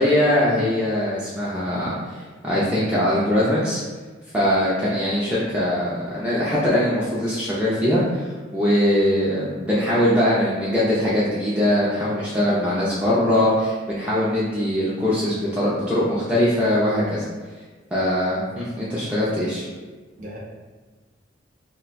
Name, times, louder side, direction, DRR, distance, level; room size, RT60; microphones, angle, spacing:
voice 1, 0.0-2.1 2.4-3.8 4.3-17.2 17.9-19.6, left 1 dB, 5° right, -9 dB, 0.4 m, -21 dB
voice 2, 1.6-2.0 20.2-20.4, equal, 40° right, -6 dB, 0.7 m, -40 dB
2.3 x 2.2 x 3.9 m, 1.3 s
head